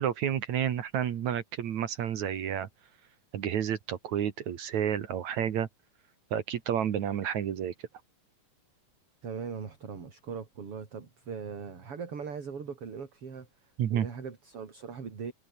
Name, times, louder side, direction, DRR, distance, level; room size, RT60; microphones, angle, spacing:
voice 1, 0.0-2.7 3.3-5.7 6.3-7.9 13.8-14.1, right 9 dB, 65° right, 2.9 m, -30 dB
voice 2, 9.2-15.3, right 6 dB, 45° right, 4.1 m, -40 dB
omnidirectional pair, 3.6 m